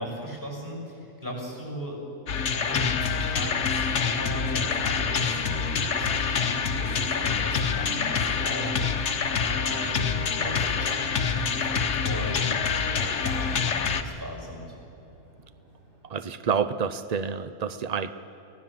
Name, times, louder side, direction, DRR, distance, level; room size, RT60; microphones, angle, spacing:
voice 1, 0.0-2.0 2.5-14.8, equal, 15° right, 0 dB, 6.1 m, -38 dB
sound 1, 2.3-14.0, left 6 dB, 55° left, 1.3 m, -26 dB
Microwave oven, 3.2-16.7, right 3 dB, 50° right, 8.0 m, -47 dB
voice 2, 16.1-18.1, right 6 dB, 85° right, 12 dB, 0.3 m, -28 dB
24.0 x 17.0 x 7.6 m, 2.9 s
omnidirectional pair, 1.6 m